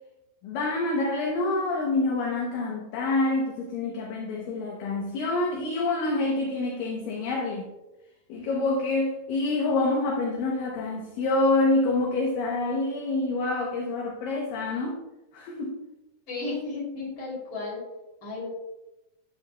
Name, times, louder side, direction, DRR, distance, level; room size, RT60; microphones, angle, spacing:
voice 1, 0.4-7.7 8.3-15.0 15.3-15.8, left 2 dB, 75° left, -1 dB, 2.3 m, -27 dB
voice 2, 16.3-17.8 18.2-18.5, left 3 dB, 35° left, -5 dB, 3.3 m, -33 dB
9.4 x 7.4 x 2.2 m, 0.98 s
omnidirectional pair, 4.5 m